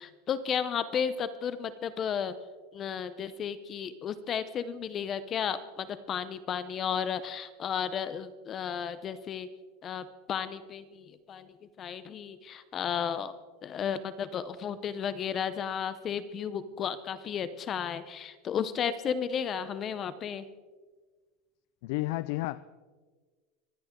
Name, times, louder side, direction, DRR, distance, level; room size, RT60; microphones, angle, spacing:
voice 1, 0.0-2.3 2.7-9.5 9.8-13.3 13.6-20.4, left 7 dB, 30° left, 14 dB, 0.6 m, -33 dB
voice 2, 21.8-22.6, left 19 dB, 65° left, 17 dB, 0.4 m, -31 dB
25.0 x 11.0 x 3.7 m, 1.4 s
supercardioid pair, 145°, 0 cm